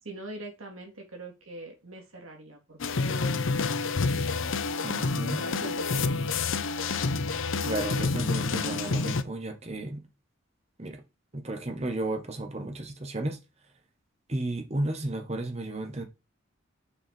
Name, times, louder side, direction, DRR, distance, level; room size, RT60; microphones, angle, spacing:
voice 1, 0.0-3.4 5.4-6.2, right 2 dB, 90° right, 3.4 m, -43 dB
sound 1, 2.8-9.2, left 4 dB, 70° left, 0.7 m, -28 dB
voice 2, 4.8-5.8 7.6-10.0 10.8-11.0 11.3-13.4 14.3-16.0, right 2 dB, 30° right, 1.5 m, -33 dB
7.2 x 5.1 x 4.6 m
head